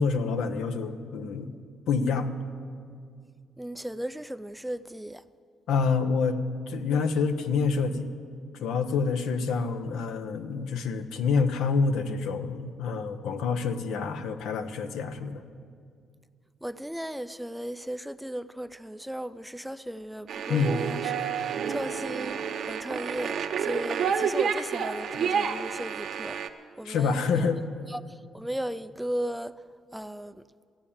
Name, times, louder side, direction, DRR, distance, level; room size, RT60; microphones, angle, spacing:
voice 1, 0.0-1.6 1.9-2.3 5.7-6.4 6.7-8.1 8.6-15.4 20.5-20.8 26.8-27.6, left 5 dB, 80° left, 0.8 m, -27 dB
voice 2, 3.6-5.2 16.6-21.0 21.4-26.4 26.8-27.5 27.9-28.0 28.3-29.5 29.9-30.3, equal, 5° right, 0.4 m, -36 dB
sound 1, 20.3-26.5, right 7 dB, 65° right, 0.7 m, -30 dB
14.0 x 8.8 x 8.6 m
cardioid pair, 90°, 0 cm